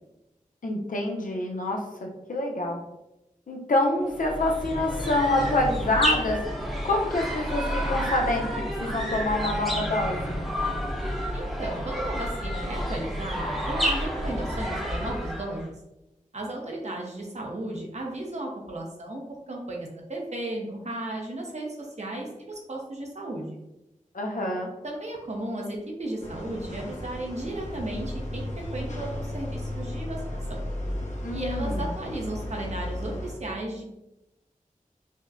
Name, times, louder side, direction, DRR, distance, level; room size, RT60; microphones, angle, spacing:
voice 1, 0.6-2.8 3.5-6.4 6.8-10.4 24.1-24.7 31.2-31.9, left 1 dB, 70° left, 0 dB, 0.7 m, -27 dB
sound 1, 4.1-15.7, equal, ahead, 0.9 m, -30 dB
voice 2, 11.3-15.7 16.3-19.2 19.5-23.6 24.8-28.5 28.7-30.4 31.3-33.8, right 1 dB, 55° right, -1 dB, 0.9 m, -34 dB
sound 2, 26.2-33.3, left 1 dB, 55° left, 1.0 m, -34 dB
5.2 x 2.1 x 2.5 m, 0.92 s
wide cardioid pair, 75°, 14 cm